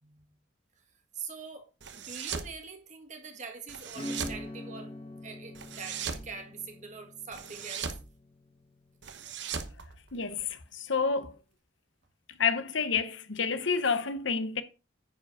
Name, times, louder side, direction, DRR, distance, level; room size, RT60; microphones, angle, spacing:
voice 1, 0.0-0.4 1.1-4.9 5.2-7.9, right 5 dB, 35° right, 1.8 m, -44 dB
sound 1, 1.8-2.5 3.7-4.4 5.5-6.3 7.3-8.0 9.0-10.5, right 6 dB, 60° right, 1.0 m, -38 dB
Acoustic guitar / Strum, 3.9-10.2, left 1 dB, 30° left, 1.4 m, -45 dB
voice 2, 10.1-11.3 12.4-14.6, left 5 dB, 70° left, 0.9 m, -29 dB
10.0 x 5.0 x 4.9 m
head